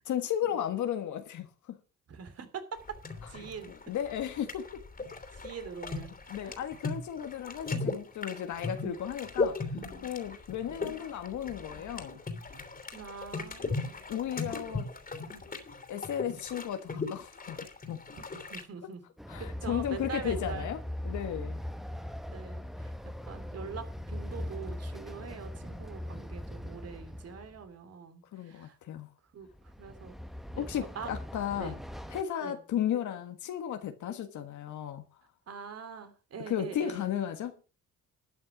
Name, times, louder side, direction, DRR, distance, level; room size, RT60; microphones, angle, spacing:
voice 1, 0.1-1.8 3.9-4.8 6.3-9.6 10.0-12.2 14.1-14.9 15.9-18.0 19.3-20.8 21.0-21.6 28.3-29.1 30.6-31.7 32.1-35.0 36.5-37.7, left 10 dB, 75° left, 1.5 m, -34 dB
voice 2, 2.1-3.7 5.3-6.5 12.9-14.1 18.3-19.0 19.4-20.7 22.3-22.9 23.3-28.8 29.3-30.2 30.5-30.6 30.9-31.1 31.5-31.8 32.4-32.6 35.5-37.1, right 6 dB, 55° right, 2.8 m, -43 dB
sound 1, 2.9-18.6, left 3 dB, 30° left, 3.0 m, -37 dB
Train, 19.2-27.7 29.5-32.2, left 1 dB, ahead, 1.1 m, -40 dB
12.5 x 8.7 x 6.0 m
cardioid pair, 90°, 30 cm